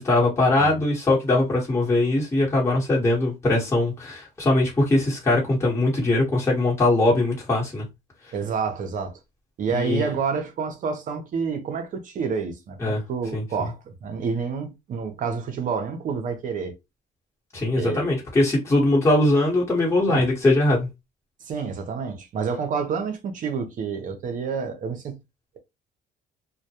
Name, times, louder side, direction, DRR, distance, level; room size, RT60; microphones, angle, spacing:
voice 1, 0.0-7.8 9.7-10.1 12.8-13.0 13.3-13.4 17.5-20.9, left 2 dB, 15° left, 1.2 m, -21 dB
voice 2, 8.3-9.2 9.6-16.8 17.8-18.1 20.1-20.3 21.4-25.2, right 5 dB, 50° right, 0.6 m, -29 dB
2.2 x 2.1 x 2.8 m
cardioid pair, 110°, 17 cm